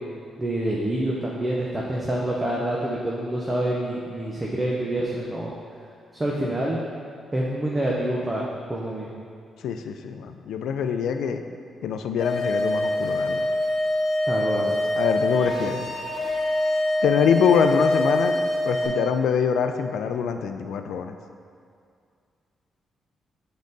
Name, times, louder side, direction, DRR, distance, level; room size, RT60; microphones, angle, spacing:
voice 1, 0.4-5.5 6.1-6.9 7.3-9.1 14.3-14.7, right 1 dB, 15° right, -4 dB, 0.5 m, -27 dB
voice 2, 9.6-11.4 11.8-13.5 14.9-15.9 17.0-18.3 18.7-21.1, left 7 dB, 85° left, 7 dB, 0.4 m, -24 dB
sound 1, 12.2-18.9, left 1 dB, 30° left, 1.1 m, -24 dB
7.4 x 3.9 x 3.9 m, 2.3 s
wide cardioid pair, 170°, 0 cm